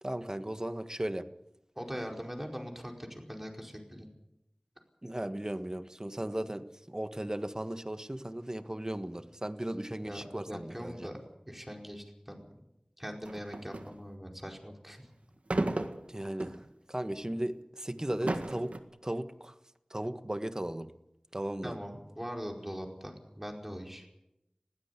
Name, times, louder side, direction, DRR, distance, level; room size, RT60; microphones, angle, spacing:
voice 1, 0.0-1.2 5.0-11.1 16.1-16.6 16.9-18.7 19.0-19.5 19.9-20.9 21.3-21.7, right 1 dB, 30° right, 10 dB, 1.4 m, -36 dB
voice 2, 1.8-4.1 10.0-11.2 11.5-12.4 13.0-15.1 21.6-24.1, equal, 10° right, 1 dB, 4.8 m, -41 dB
sound 1, 13.2-14.0 15.5-16.7 17.2-17.3 18.0-18.8, right 2 dB, 75° right, 1.7 m, -33 dB
21.0 x 16.0 x 8.4 m, 0.88 s
wide cardioid pair, 45°, 2 cm